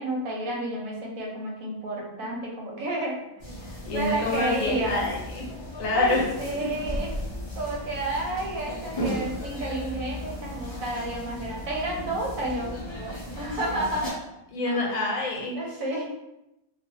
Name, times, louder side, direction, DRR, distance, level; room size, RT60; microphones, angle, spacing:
voice 1, 0.0-3.1 3.9-5.0 5.9-6.1 6.4-7.2 7.6-14.1 14.7-14.9 15.5-16.0, right 1 dB, 90° right, -2 dB, 1.1 m, -31 dB
sound 1, 3.4-14.1, equal, 40° left, 0.4 m, -36 dB
voice 2, 3.9-5.4 5.8-6.3 6.6-6.7 14.5-15.6, left 2 dB, 75° left, -2 dB, 1.1 m, -27 dB
2.4 x 2.4 x 2.7 m, 0.89 s
omnidirectional pair, 1.4 m